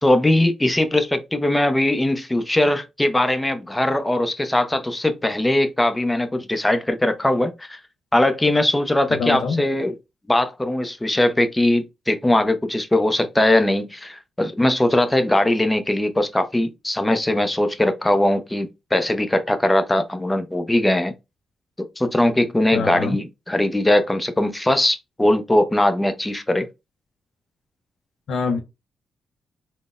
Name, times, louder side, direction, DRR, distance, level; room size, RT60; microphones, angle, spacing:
voice 1, 0.0-7.8 8.1-9.9 10.3-21.1 22.0-26.7, left 1 dB, 15° left, 0.6 m, -20 dB
voice 2, 9.1-9.6 22.7-23.2 28.3-28.6, left 4 dB, 75° left, 0.5 m, -24 dB
3.7 x 2.1 x 2.4 m
cardioid pair, 75°, 0 cm